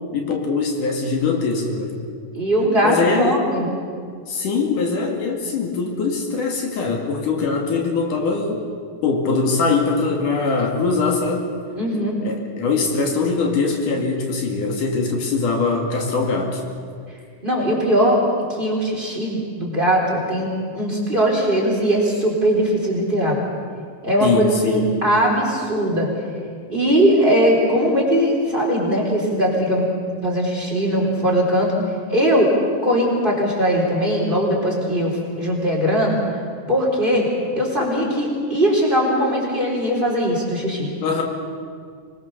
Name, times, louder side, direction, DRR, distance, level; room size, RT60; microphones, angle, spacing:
voice 1, 0.1-2.0 2.8-3.5 4.3-8.7 9.0-11.5 12.2-16.6 24.2-24.9 41.0-41.2, left 4 dB, 70° left, 2 dB, 3.6 m, -22 dB
voice 2, 2.3-3.7 11.8-12.2 17.4-18.2 18.5-23.4 24.0-26.1 26.7-29.9 30.2-31.7 32.1-32.5 32.8-35.1 35.4-36.2 36.7-37.3 37.6-40.9, equal, 15° right, -1 dB, 4.0 m, -20 dB
25.5 x 21.0 x 6.8 m, 2.1 s
omnidirectional pair, 4.0 m